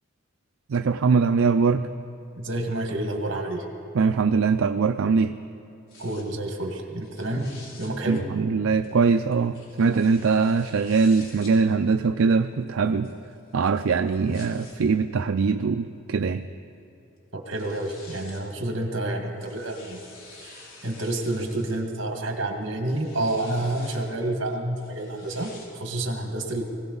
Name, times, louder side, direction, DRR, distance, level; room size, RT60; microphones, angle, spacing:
voice 1, 0.7-1.9 3.9-5.4 8.1-13.1 13.5-16.5, right 5 dB, 80° right, 8 dB, 0.4 m, -22 dB
voice 2, 2.4-3.6 6.0-8.3 17.3-20.0 20.4-26.6, right 1 dB, 60° right, 3 dB, 1.9 m, -29 dB
sound 1, 5.9-6.2 7.0-7.9 8.8-11.5 12.4-14.8 15.6-15.7 17.2-17.3 17.5-18.5 19.2-21.8 22.6-24.0 24.8-25.7, left 3 dB, 75° left, 3.3 m, -48 dB
21.5 x 16.5 x 4.0 m, 2.7 s
head